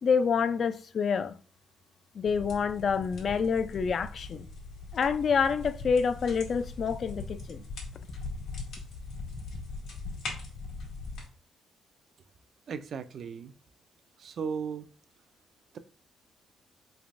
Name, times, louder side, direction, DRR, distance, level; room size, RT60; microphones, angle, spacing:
voice 1, 0.0-1.3 2.2-4.5 4.9-7.6, left 6 dB, 50° left, 0.3 m, -27 dB
sound 1, 2.2-11.3, left 3 dB, 80° left, 1.3 m, -40 dB
voice 2, 12.7-13.5 14.2-14.9, right 6 dB, 60° right, 0.3 m, -36 dB
3.2 x 3.2 x 2.5 m
cardioid pair, 90°, 0 cm